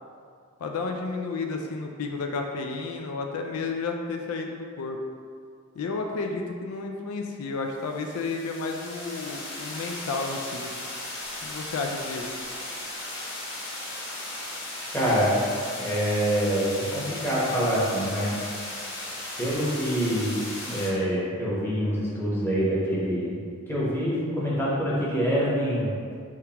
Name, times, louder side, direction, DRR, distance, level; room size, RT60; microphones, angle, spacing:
voice 1, 0.6-5.0 5.8-10.7 11.4-12.4, left 3 dB, 75° left, 3 dB, 0.4 m, -32 dB
sound 1, 7.8-20.9, left 1 dB, 55° left, 1.1 m, -36 dB
voice 2, 14.9-15.4 15.8-18.3 19.4-20.4 20.7-23.4 23.7-26.1, equal, 10° left, -7 dB, 0.9 m, -25 dB
4.5 x 3.6 x 2.9 m, 2.2 s
head